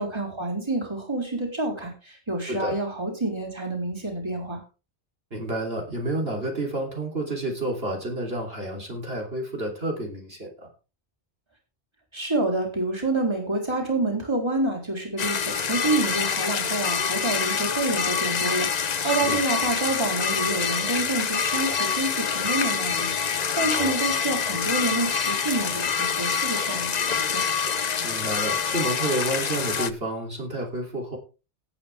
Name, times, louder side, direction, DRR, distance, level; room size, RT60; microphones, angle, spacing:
voice 1, 0.0-4.6 12.1-27.4, right 2 dB, 25° right, 0 dB, 4.0 m, -28 dB
voice 2, 5.3-10.7 19.0-19.4 23.7-23.9 28.0-31.2, right 1 dB, 60° right, 0 dB, 3.6 m, -30 dB
sound 1, 15.2-29.9, left 6 dB, 45° left, 0.8 m, -26 dB
17.5 x 8.8 x 3.5 m, 0.32 s
omnidirectional pair, 1.1 m